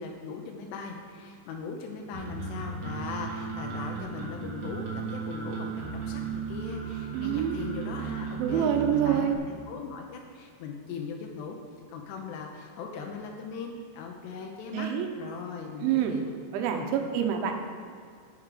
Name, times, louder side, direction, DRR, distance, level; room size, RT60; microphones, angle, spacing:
voice 1, 0.0-5.7 6.1-9.4 9.7-11.6 11.9-14.9 15.2-16.3 16.7-16.9, left 5 dB, 80° left, 2 dB, 2.7 m, -39 dB
sound 1, 2.1-9.3, right 5 dB, 55° right, 2.3 m, -35 dB
voice 2, 7.1-7.6 8.4-9.4 14.7-15.1 15.8-16.2 16.5-17.5, right 9 dB, 90° right, 4 dB, 3.2 m, -26 dB
9.9 x 6.7 x 4.9 m, 2.1 s
omnidirectional pair, 5.4 m